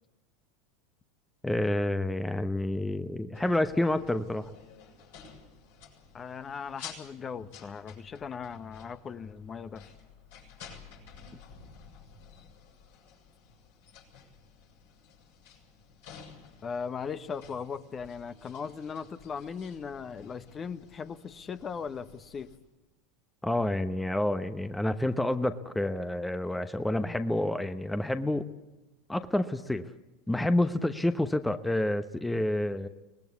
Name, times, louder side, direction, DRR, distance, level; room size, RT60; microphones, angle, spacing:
voice 1, 1.4-4.5 23.4-28.5 29.1-29.8 30.3-32.9, left 1 dB, 5° left, 10 dB, 1.0 m, -28 dB
sound 1, 3.3-22.6, left 6 dB, 70° left, 7.4 m, -52 dB
voice 2, 6.1-9.9 16.6-22.5, left 6 dB, 30° left, 12 dB, 1.2 m, -38 dB
24.5 x 20.0 x 8.3 m, 1.1 s
hypercardioid pair, 85°, 0 cm